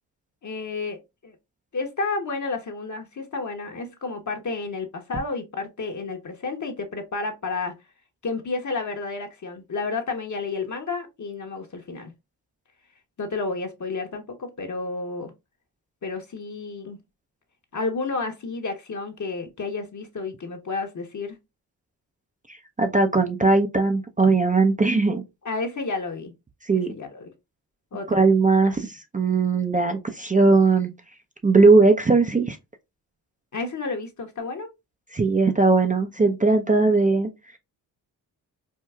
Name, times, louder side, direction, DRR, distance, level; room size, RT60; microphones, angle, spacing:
voice 1, 0.4-1.4 1.7-7.7 8.2-12.1 13.2-15.3 16.0-17.0 17.7-21.4 25.4-26.3 26.7-27.3 27.9-28.2 33.5-34.7, left 3 dB, 40° left, 0.9 m, -31 dB
voice 2, 22.8-25.2 26.6-26.9 28.1-30.9 31.4-32.6 35.1-37.3, right 3 dB, 20° right, 0.5 m, -19 dB
4.5 x 2.3 x 2.3 m
supercardioid pair, 45°, 44 cm